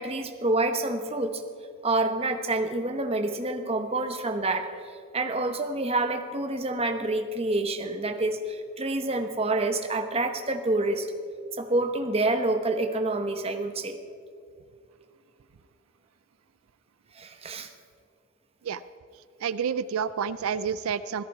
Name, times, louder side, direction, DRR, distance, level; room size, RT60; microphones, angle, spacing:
voice 1, 0.0-1.4 1.8-4.7 5.1-11.1 11.6-14.0 17.1-17.7, right 2 dB, 30° right, 6 dB, 1.1 m, -27 dB
voice 2, 19.4-21.2, right 7 dB, 85° right, 15 dB, 0.4 m, -29 dB
17.0 x 14.0 x 4.8 m, 2.2 s
head